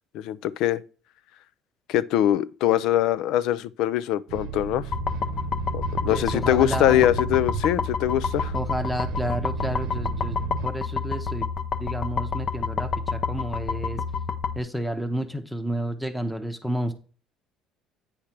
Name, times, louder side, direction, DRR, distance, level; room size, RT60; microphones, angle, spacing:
voice 1, 0.1-0.8 1.9-4.9 5.7-8.5, left 13 dB, 75° left, 0.4 m, -23 dB
sound 1, 4.3-10.7, right 9 dB, 85° right, 0.9 m, -34 dB
sound 2, 4.9-14.6, left 5 dB, 45° left, 0.8 m, -29 dB
voice 2, 6.1-7.1 8.5-10.4 10.6-11.5 11.7-14.0 14.6-16.9, equal, ahead, 0.9 m, -31 dB
8.6 x 3.3 x 5.9 m
supercardioid pair, 100°, 0 cm